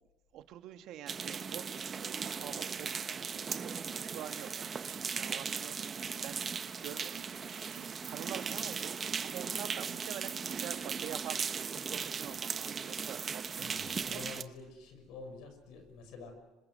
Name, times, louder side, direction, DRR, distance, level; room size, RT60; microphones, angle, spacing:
voice 1, 0.3-5.8 6.1-14.2, right 11 dB, 70° right, 9 dB, 1.4 m, -47 dB
sound 1, 1.1-14.4, right 6 dB, 35° right, 1.0 m, -38 dB
voice 2, 13.6-16.3, left 4 dB, 80° left, 6 dB, 6.0 m, -48 dB
27.0 x 25.5 x 6.4 m, 1.1 s
cardioid pair, 115°, 0 cm